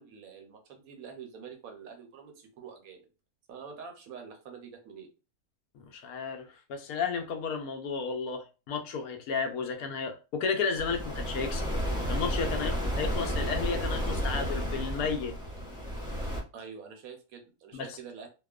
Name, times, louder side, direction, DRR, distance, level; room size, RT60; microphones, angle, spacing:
voice 1, 0.0-3.1 3.5-5.1 12.6-12.8 16.5-18.3, right 6 dB, 75° right, 1.1 m, -46 dB
voice 2, 5.9-11.7 12.1-15.3 17.7-18.0, left 5 dB, 80° left, 1.1 m, -33 dB
sound 1, 10.7-16.4, equal, 5° right, 0.6 m, -32 dB
2.8 x 2.0 x 2.3 m
omnidirectional pair, 1.6 m